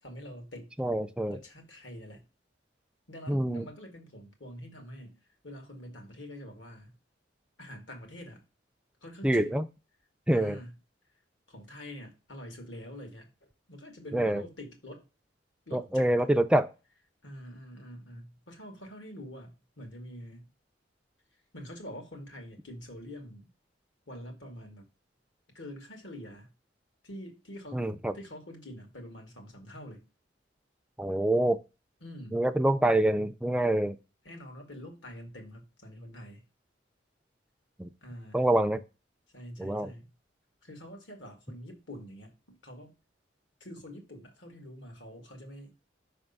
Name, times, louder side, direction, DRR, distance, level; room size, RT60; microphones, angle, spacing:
voice 1, 0.0-0.7 1.3-2.3 3.1-7.0 7.6-8.4 9.0-9.6 10.3-10.8 11.5-15.1 15.7-16.1 17.2-20.5 21.5-23.5 24.1-24.9 25.5-26.5 27.0-27.8 28.1-30.1 32.0-32.4 34.2-36.5 38.0-38.5 39.3-40.2 40.6-42.4 42.6-42.9 43.6-45.7, equal, 70° left, 1.8 m, -46 dB
voice 2, 0.8-1.4 3.3-3.7 9.2-9.6 10.3-10.6 14.1-14.4 15.7-16.7 27.7-28.1 31.0-31.6 32.3-34.0 37.8-37.9 38.3-38.8 39.6-39.9, right 1 dB, 5° right, 0.4 m, -26 dB
5.8 x 3.5 x 5.3 m
head